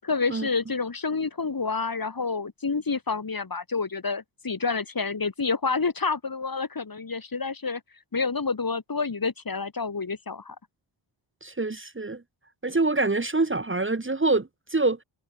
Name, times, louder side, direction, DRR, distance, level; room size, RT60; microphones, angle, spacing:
voice 1, 0.0-7.8 8.1-10.6, left 4 dB, 45° left, 6.3 m, -28 dB
voice 2, 11.4-12.2 12.6-15.0, right 3 dB, 25° right, 2.2 m, -25 dB
cardioid pair, 60°, 49 cm